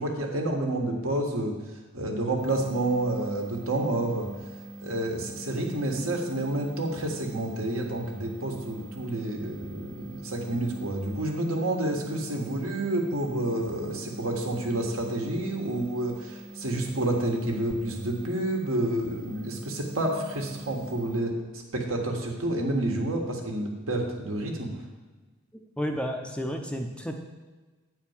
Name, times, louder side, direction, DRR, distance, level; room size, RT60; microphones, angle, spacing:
voice 1, 0.0-1.5 1.9-4.3 4.8-24.7, right 1 dB, 75° right, 1 dB, 1.5 m, -29 dB
sound 1, 2.4-21.2, right 1 dB, 50° right, 1.4 m, -44 dB
voice 2, 25.8-27.2, equal, 5° left, 3 dB, 0.5 m, -31 dB
9.4 x 4.4 x 7.2 m, 1.3 s
head